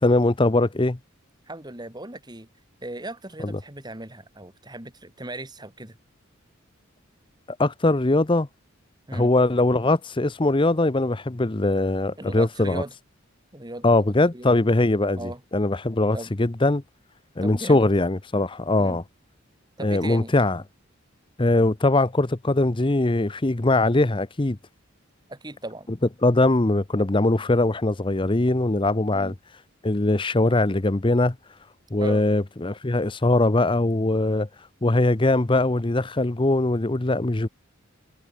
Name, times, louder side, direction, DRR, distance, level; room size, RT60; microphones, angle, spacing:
voice 1, 0.0-1.0 3.4-3.5 7.6-8.5 9.1-12.8 13.8-16.8 17.4-19.0 19.8-20.6 21.4-24.6 26.2-29.3 29.8-31.4 31.9-34.5 34.8-37.5, left 2 dB, 25° left, 0.7 m, -21 dB
voice 2, 1.5-2.5 2.8-6.0 9.1-9.3 12.2-12.9 13.5-14.0 14.3-14.5 15.1-15.4 16.1-16.3 17.4-17.9 18.8-19.0 19.8-20.3 25.3-25.9 29.1-29.3 32.0-32.2, right 1 dB, 20° right, 3.4 m, -37 dB
head